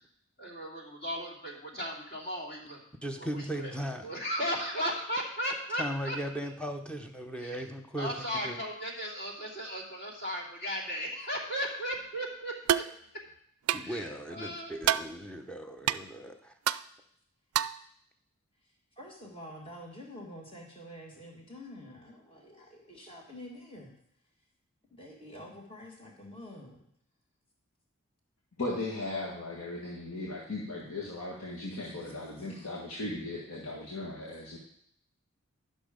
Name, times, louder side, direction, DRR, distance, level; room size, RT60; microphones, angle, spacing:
voice 1, 0.4-2.8 3.2-3.7 4.0-6.2 6.4-6.5 7.4-7.6 8.0-12.8 13.1-13.2 13.8-14.7, equal, 45° left, -5 dB, 2.8 m, -36 dB
voice 2, 3.0-4.1 5.7-8.6 13.7-16.5, equal, 5° left, 5 dB, 0.8 m, -37 dB
sound 1, 12.7-12.9 13.7-13.9 14.8-15.1 15.9-16.0 16.7-16.8 17.5-17.8, right 11 dB, 85° right, 0.4 m, -27 dB
voice 3, 19.0-24.0 24.9-26.8 31.8-32.7, left 1 dB, 25° left, -1 dB, 1.9 m, -48 dB
voice 4, 28.6-34.6, left 2 dB, 75° left, -5 dB, 1.8 m, -37 dB
11.5 x 6.3 x 5.1 m, 0.71 s
head